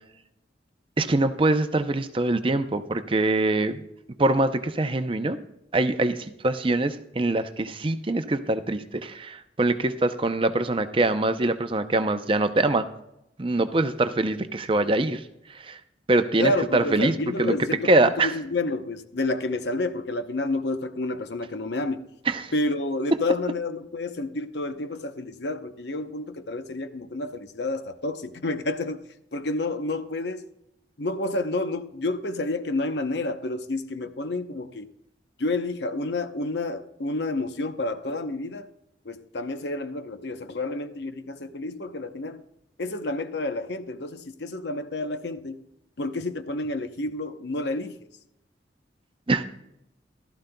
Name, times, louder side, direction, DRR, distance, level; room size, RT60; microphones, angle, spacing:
voice 1, 1.0-3.8 4.2-5.4 5.7-12.9 13.4-15.2 15.5-15.8 16.1-17.1 17.4-17.6 17.8-18.3 22.3-22.5 49.3-49.4, right 2 dB, 30° right, 0.6 m, -24 dB
voice 2, 16.4-22.0 22.5-29.0 29.3-30.5 31.0-34.9 35.4-38.7 39.0-42.4 42.8-45.6 46.0-48.1, left 2 dB, 70° left, 0.8 m, -29 dB
15.5 x 12.5 x 2.3 m
head